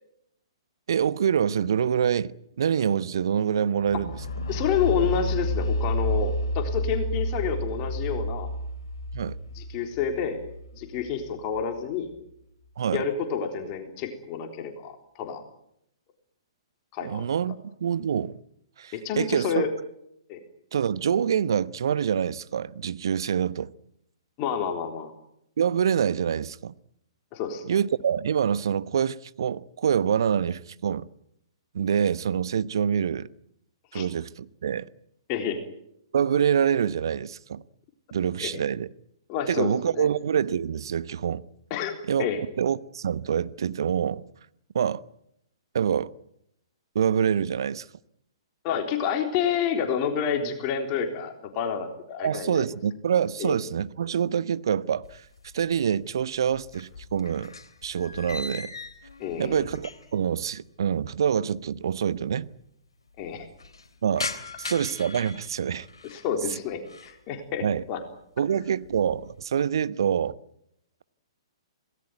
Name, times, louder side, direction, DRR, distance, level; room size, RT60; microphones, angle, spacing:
voice 1, 0.9-4.2 9.1-9.4 12.8-13.1 17.0-18.4 18.8-19.6 20.7-23.7 25.6-26.8 27.6-31.1 31.7-33.3 33.9-34.9 36.1-37.6 38.1-38.9 39.5-41.4 42.1-42.3 42.6-44.2 44.7-45.0 45.7-46.1 46.9-47.9 52.2-55.2 55.5-57.5 57.8-58.7 59.4-62.5 64.0-64.3 64.6-65.9 67.6-67.8 68.4-70.4, right 8 dB, 55° right, 1.0 m, -26 dB
sound 1, 3.9-11.6, left 1 dB, 55° left, 3.4 m, -30 dB
voice 2, 4.5-8.5 9.6-10.4 10.8-12.1 12.9-15.4 16.9-17.3 18.9-19.7 20.3-20.4 24.4-25.1 27.3-27.6 33.9-34.1 35.3-35.6 38.4-38.6 39.3-40.1 41.7-42.4 48.6-52.7 53.4-53.6 59.2-59.6 63.2-63.5 66.1-68.0, left 7 dB, 30° left, 3.7 m, -29 dB
sound 2, 55.0-55.9 56.2-60.3 60.6-60.7 61.5-61.6 61.8-61.9 62.2-62.7 63.1-66.3 66.7-67.2 67.7-68.1 68.5-69.4, left 4 dB, 70° left, 3.1 m, -40 dB
27.5 x 19.0 x 9.3 m
figure-of-eight pair, 115°, 3 cm